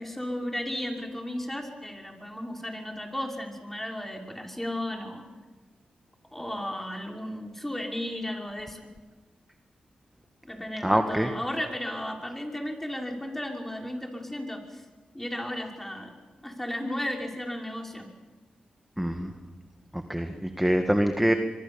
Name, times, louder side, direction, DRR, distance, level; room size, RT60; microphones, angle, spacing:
voice 1, 0.0-5.2 6.3-8.8 10.4-14.8 15.1-16.1 16.4-18.1, left 1 dB, 10° left, 2 dB, 5.7 m, -34 dB
voice 2, 10.8-11.3 19.0-19.3 19.9-21.3, equal, 5° right, 6 dB, 1.9 m, -25 dB
24.0 x 24.0 x 7.2 m, 1.3 s
cardioid pair, 50°, 3 cm